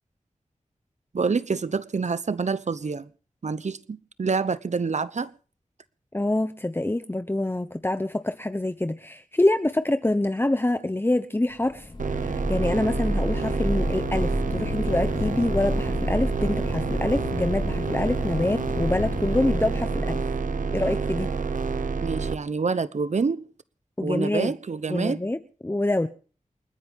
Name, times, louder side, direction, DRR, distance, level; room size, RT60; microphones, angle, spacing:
voice 1, 1.1-3.1 3.4-5.3 22.0-23.4 24.0-25.2, right 4 dB, 60° right, 0.9 m, -27 dB
voice 2, 6.1-20.2 20.7-21.3 24.0-24.5 24.9-26.1, left 1 dB, 15° left, 0.9 m, -26 dB
sound 1, 11.7-21.0, left 2 dB, 35° left, 2.3 m, -31 dB
sound 2, 12.0-22.3, right 5 dB, 85° right, 1.0 m, -28 dB
29.0 x 9.9 x 3.6 m
wide cardioid pair, 60°, 13 cm